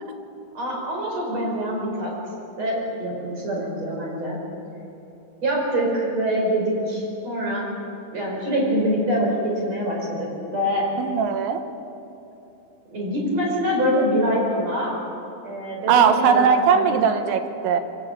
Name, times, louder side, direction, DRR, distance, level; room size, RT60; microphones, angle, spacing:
voice 1, 0.5-2.1 2.6-4.4 5.4-7.7 8.1-10.9 12.9-14.9 15.4-17.0, equal, 35° right, -2 dB, 5.8 m, -25 dB
voice 2, 11.0-11.6 15.9-17.8, right 7 dB, 75° right, 7 dB, 3.4 m, -19 dB
24.0 x 16.5 x 7.4 m, 3.0 s
omnidirectional pair, 5.6 m